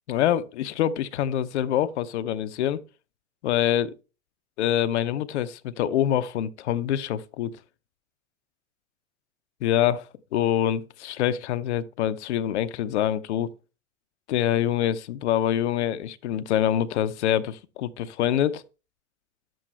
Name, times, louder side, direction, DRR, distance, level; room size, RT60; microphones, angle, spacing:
voice 1, 0.1-2.8 3.4-4.0 4.6-7.6 9.6-13.5 14.3-18.6, left 11 dB, 55° left, 0.7 m, -25 dB
11.0 x 7.7 x 3.2 m
figure-of-eight pair, 95°, 42 cm